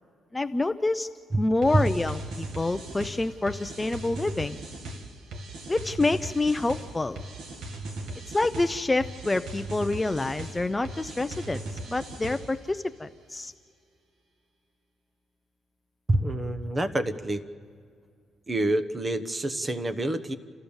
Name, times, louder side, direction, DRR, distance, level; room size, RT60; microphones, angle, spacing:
voice 1, 0.3-1.1 1.4-4.6 5.7-7.2 8.3-11.6 11.9-13.5, left 2 dB, 15° left, 10 dB, 0.6 m, -27 dB
sound 1, 1.6-12.7, right 2 dB, 80° right, 2.2 m, -39 dB
voice 2, 16.1-17.4 18.5-20.4, right 1 dB, 25° right, 10 dB, 1.1 m, -26 dB
29.5 x 13.5 x 7.2 m, 2.1 s
cardioid pair, 90°, 0 cm